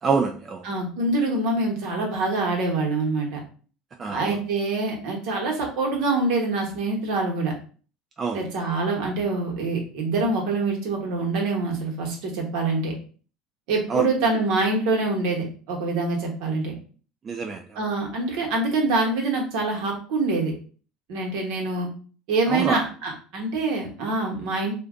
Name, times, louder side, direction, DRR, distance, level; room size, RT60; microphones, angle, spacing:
voice 1, 0.0-0.6 4.0-4.4 8.2-8.4 13.9-14.1 17.2-17.8 22.5-22.8, right 5 dB, 35° right, 4 dB, 0.4 m, -26 dB
voice 2, 0.6-3.4 4.1-7.5 8.3-12.9 13.7-16.7 17.8-20.5 21.1-21.9 22.3-24.7, right 3 dB, 70° right, 0 dB, 1.1 m, -25 dB
2.5 x 2.2 x 3.6 m, 0.40 s
hypercardioid pair, 85°, 0 cm